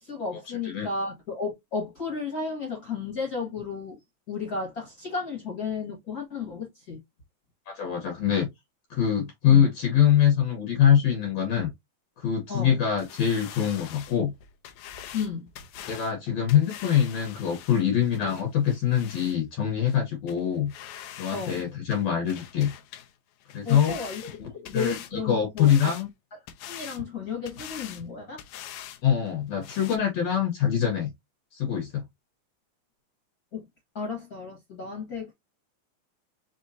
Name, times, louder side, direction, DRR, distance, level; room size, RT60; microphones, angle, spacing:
voice 1, 0.0-4.0 4.3-7.0 9.5-9.7 12.5-12.7 15.1-15.5 21.3-21.6 23.6-24.2 24.5-25.9 26.7-28.4 33.5-33.6 33.9-35.3, left 5 dB, 40° left, 1.3 m, -33 dB
voice 2, 7.7-8.5 8.9-11.7 12.2-14.3 15.9-20.7 21.2-22.7 23.5-24.0 24.4-26.1 29.0-31.1 31.5-32.0, left 9 dB, 65° left, 1.9 m, -24 dB
sound 1, 13.0-19.4 19.9-20.0 20.3-20.4 20.7-21.6 21.9-23.1 23.4-25.1 25.6-26.1 26.5-27.0 27.4-28.0 28.4-29.0 29.3-29.4 29.6-30.0, left 11 dB, 85° left, 1.6 m, -43 dB
5.1 x 3.1 x 2.6 m
omnidirectional pair, 3.9 m